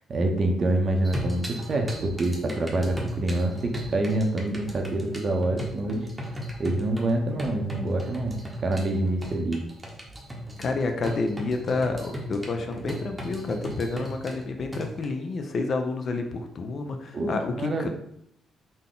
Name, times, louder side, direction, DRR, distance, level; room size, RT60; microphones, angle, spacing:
voice 1, 0.1-6.3 6.6-9.6 17.1-17.9, right 2 dB, 45° right, 3 dB, 0.7 m, -26 dB
sound 1, 1.0-15.1, equal, 10° right, 0.8 m, -37 dB
voice 2, 10.6-17.9, left 3 dB, 50° left, 5 dB, 0.5 m, -29 dB
3.8 x 2.2 x 3.8 m, 0.73 s
cardioid pair, 90°, 0 cm